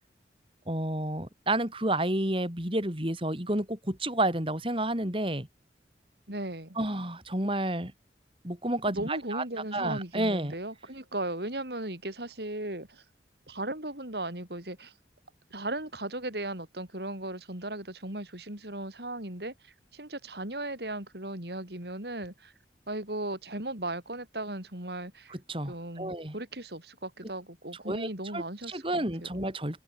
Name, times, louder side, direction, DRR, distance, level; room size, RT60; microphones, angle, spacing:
voice 1, 0.7-5.5 6.7-7.9 8.4-9.4 9.7-10.5 25.3-26.4 27.9-29.8, right 1 dB, 30° right, 4.8 m, -30 dB
voice 2, 6.3-6.8 8.9-13.0 13.5-14.9 15.5-22.5 22.9-25.4 25.7-29.4, right 1 dB, 65° right, 5.2 m, -37 dB
head